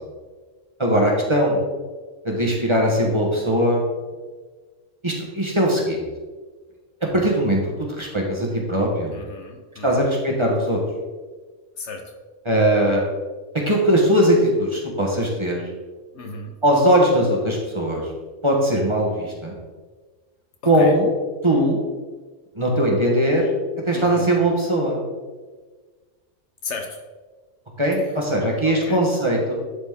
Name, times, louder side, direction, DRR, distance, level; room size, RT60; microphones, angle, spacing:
voice 1, 0.8-1.6 2.2-3.8 5.0-6.0 7.1-7.6 8.0-9.1 9.8-10.8 12.4-13.0 13.7-15.6 16.6-18.0 18.4-19.5 20.6-21.1 21.4-21.8 22.6-23.4 23.9-25.0 27.8-29.5, equal, 25° right, -2 dB, 1.2 m, -20 dB
voice 2, 9.1-10.0 11.8-12.1 16.1-16.5 20.6-21.0 23.9-24.2 26.6-27.0 28.6-29.0, left 3 dB, 65° left, 4 dB, 1.0 m, -34 dB
11.0 x 4.1 x 3.6 m, 1.4 s
omnidirectional pair, 1.4 m